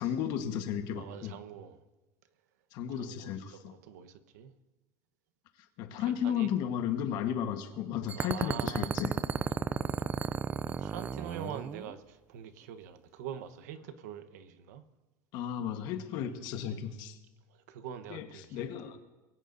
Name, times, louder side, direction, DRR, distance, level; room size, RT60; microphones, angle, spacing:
voice 1, 0.0-1.3 2.7-3.7 5.8-9.1 15.3-17.2 18.1-19.0, left 9 dB, 50° left, 1.3 m, -34 dB
voice 2, 0.9-1.8 2.9-4.5 6.0-6.5 8.1-8.9 10.6-14.8 16.3-16.4 17.5-18.7, right 9 dB, 85° right, 1.1 m, -44 dB
sound 1, 8.1-11.9, right 6 dB, 20° right, 0.4 m, -33 dB
22.5 x 16.5 x 2.7 m
supercardioid pair, 150°, 9 cm